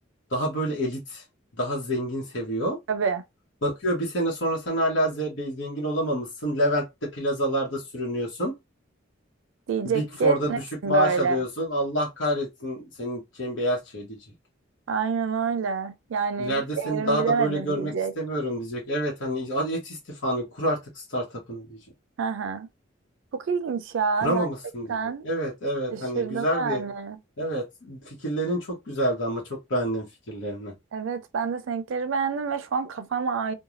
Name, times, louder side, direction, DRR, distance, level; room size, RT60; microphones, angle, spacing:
voice 1, 0.3-1.2 1.6-2.8 3.6-8.6 9.8-14.2 16.4-21.8 24.2-25.0 25.2-26.8 27.4-30.7, equal, 75° left, 1.0 m, -28 dB
voice 2, 2.9-3.2 9.7-11.4 14.9-18.1 22.2-22.7 23.3-24.5 24.9-25.2 25.9-27.2 30.9-33.5, right 5 dB, 80° right, 0.4 m, -27 dB
3.1 x 2.2 x 2.5 m
head